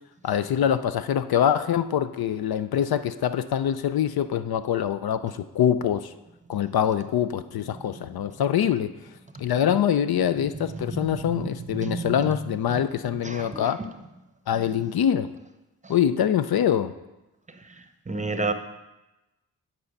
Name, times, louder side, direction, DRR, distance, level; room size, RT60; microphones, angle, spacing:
voice 1, 0.2-6.1 6.5-8.9 9.4-13.8 14.5-15.3 15.9-16.9, left 9 dB, 65° left, 12 dB, 0.5 m, -24 dB
voice 2, 10.5-12.3 13.2-13.9 14.5-14.6 15.8-15.9 18.1-18.5, right 3 dB, 20° right, 8 dB, 0.7 m, -32 dB
9.5 x 4.3 x 5.2 m, 1.0 s
cardioid pair, 55°, 40 cm